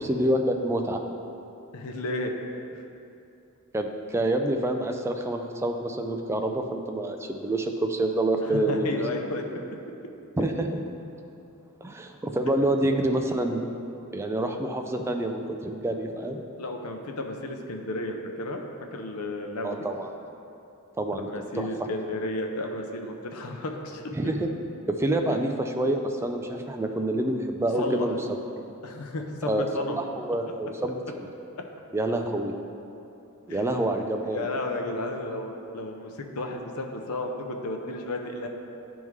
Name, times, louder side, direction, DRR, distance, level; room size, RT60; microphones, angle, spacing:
voice 1, 0.0-1.0 3.7-9.0 10.4-10.8 11.8-13.6 14.1-16.4 19.6-20.1 21.0-21.3 21.5-21.9 24.2-24.5 24.9-28.4 29.5-29.7 29.9-31.3 31.9-32.5 33.5-34.5, right 1 dB, 10° right, 4 dB, 0.3 m, -27 dB
voice 2, 1.7-2.3 2.7-2.8 8.5-9.4 16.6-18.6 18.9-19.9 21.3-24.1 27.8-28.1 28.8-30.0 31.6-31.7 33.5-33.6 34.3-38.5, left 2 dB, 75° left, 3 dB, 0.6 m, -33 dB
10.5 x 3.6 x 3.2 m, 2.7 s
head